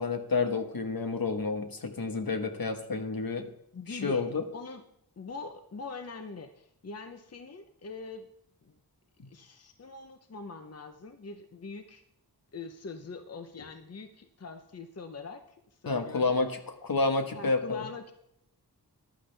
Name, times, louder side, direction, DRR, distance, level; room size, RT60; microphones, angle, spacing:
voice 1, 0.0-3.5 3.9-4.4 9.2-9.3 15.8-17.9, left 3 dB, 65° left, 6 dB, 1.4 m, -30 dB
voice 2, 3.7-4.3 4.5-4.8 5.2-8.3 8.6-8.7 9.3-12.0 12.5-15.4 15.8-16.4 17.3-18.1, left 4 dB, 40° left, 8 dB, 0.8 m, -43 dB
14.0 x 11.5 x 3.4 m, 0.73 s
wide cardioid pair, 95°, 38 cm